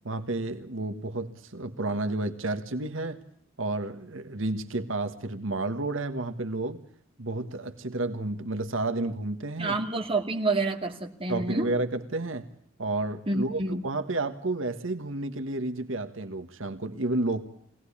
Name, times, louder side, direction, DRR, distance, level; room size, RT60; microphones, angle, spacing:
voice 1, 0.0-3.2 3.6-6.8 7.2-9.8 11.3-12.5 12.8-17.4, right 2 dB, 70° right, 9 dB, 1.5 m, -31 dB
voice 2, 9.6-11.7 13.3-13.8, right 2 dB, 25° right, 2 dB, 2.6 m, -28 dB
24.0 x 18.5 x 8.5 m, 0.68 s
head